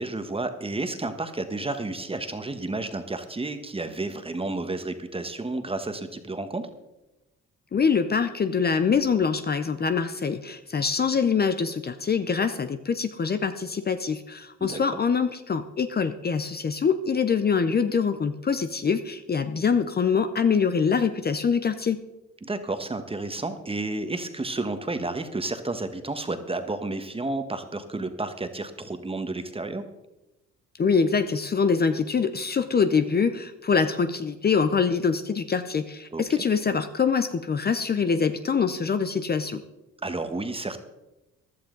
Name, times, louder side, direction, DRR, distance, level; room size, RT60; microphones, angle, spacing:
voice 1, 0.0-6.7 14.6-14.8 22.4-29.8 36.1-36.4 40.0-40.8, right 2 dB, 20° right, 8 dB, 1.3 m, -31 dB
voice 2, 7.7-22.0 30.8-39.6, left 5 dB, 35° left, 10 dB, 0.7 m, -24 dB
15.5 x 11.5 x 3.9 m, 0.97 s
cardioid pair, 90°, 30 cm